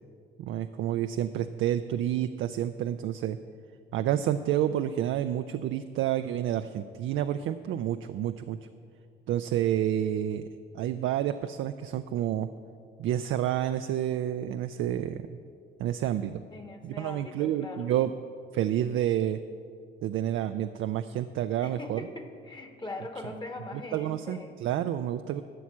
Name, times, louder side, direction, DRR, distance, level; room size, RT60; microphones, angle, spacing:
voice 1, 0.4-3.4 3.9-8.6 9.3-10.4 10.7-12.5 13.0-15.4 15.8-16.4 16.8-18.1 18.5-19.4 20.0-22.1 23.9-25.4, right 11 dB, 80° right, 9 dB, 0.4 m, -29 dB
voice 2, 16.5-18.0 20.5-20.6 21.6-24.5, left 2 dB, 20° left, 5 dB, 1.2 m, -41 dB
12.5 x 6.1 x 8.4 m, 2.3 s
cardioid pair, 90°, 20 cm